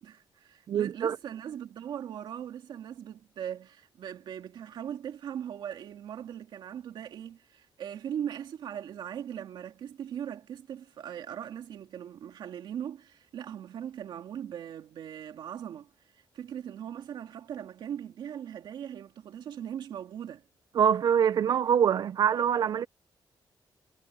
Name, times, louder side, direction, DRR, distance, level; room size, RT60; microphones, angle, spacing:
voice 1, 0.0-20.4, right 9 dB, 80° right, 2.4 m, -40 dB
voice 2, 0.7-1.2 20.7-22.9, right 8 dB, 60° right, 0.6 m, -24 dB
cardioid pair, 135°, 8 cm